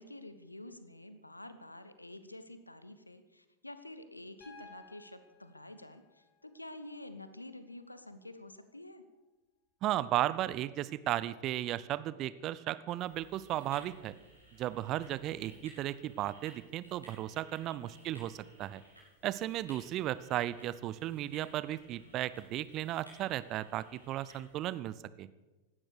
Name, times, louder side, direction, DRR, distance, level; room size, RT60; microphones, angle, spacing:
voice 1, 0.0-9.0 17.5-17.9, left 1 dB, 85° left, 12 dB, 1.1 m, -49 dB
Piano, 4.4-8.4 10.0-10.1, left 4 dB, 35° left, 3.9 m, -59 dB
voice 2, 9.8-14.1 14.6-18.8 19.2-25.3, right 13 dB, 35° right, 17 dB, 0.7 m, -35 dB
sound 1, 12.9-24.8, right 1 dB, 90° right, 6.6 m, -59 dB
16.5 x 12.5 x 6.5 m, 1.2 s
figure-of-eight pair, 90°, 0 cm